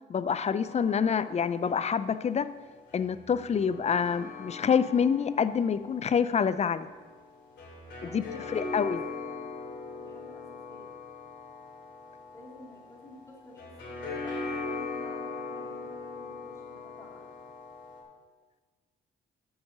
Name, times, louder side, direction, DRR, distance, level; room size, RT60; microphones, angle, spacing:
voice 1, 0.1-2.5 2.9-6.9 8.0-9.0, left 7 dB, 35° left, 14 dB, 0.4 m, -27 dB
sound 1, 0.6-18.0, left 3 dB, 60° left, 2.7 m, -41 dB
voice 2, 8.0-9.4 10.0-10.9 12.3-17.3, left 1 dB, 15° left, -4 dB, 2.9 m, -52 dB
8.1 x 6.0 x 6.6 m, 1.4 s
cardioid pair, 90°, 20 cm